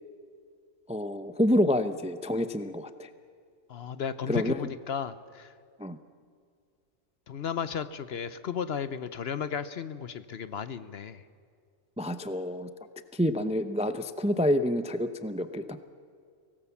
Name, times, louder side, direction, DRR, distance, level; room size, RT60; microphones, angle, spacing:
voice 1, 0.9-3.1 4.3-4.6 5.8-6.0 12.0-12.7 13.1-15.8, left 1 dB, 10° right, 11 dB, 0.4 m, -28 dB
voice 2, 3.7-5.5 7.3-11.2, left 7 dB, 60° left, 14 dB, 0.8 m, -34 dB
24.0 x 18.5 x 7.1 m, 2.2 s
omnidirectional pair, 1.4 m